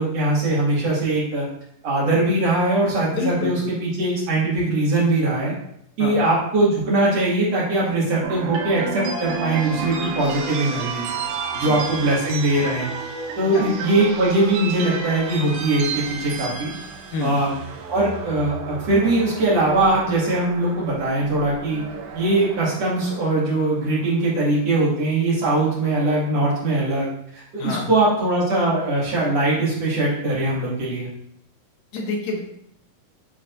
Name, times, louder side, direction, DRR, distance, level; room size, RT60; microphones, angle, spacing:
voice 1, 0.0-1.5 1.8-5.5 6.0-11.1 11.6-12.9 13.4-16.7 17.2-17.6 17.9-21.8 22.1-31.1, right 2 dB, 45° right, -7 dB, 2.7 m, -21 dB
voice 2, 3.2-3.5 6.0-6.1 11.5-11.8 13.5-13.6 17.1-17.3 27.6-27.9 31.9-32.4, left 3 dB, 70° left, -1 dB, 2.6 m, -27 dB
sound 1, 8.2-24.4, right 4 dB, 90° right, 3.0 m, -32 dB
10.5 x 4.0 x 2.6 m, 0.74 s
omnidirectional pair, 4.7 m